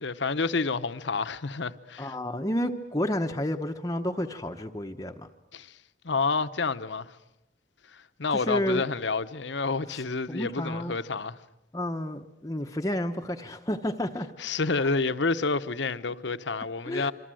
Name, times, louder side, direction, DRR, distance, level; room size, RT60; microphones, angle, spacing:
voice 1, 0.0-2.1 5.5-5.8 6.0-7.2 7.9-11.4 14.4-17.1, left 4 dB, 70° left, 1.0 m, -29 dB
voice 2, 2.0-5.3 8.3-8.9 9.9-10.0 10.3-11.0 11.7-14.3 16.8-17.1, left 1 dB, 20° left, 0.9 m, -30 dB
27.0 x 25.0 x 7.7 m
head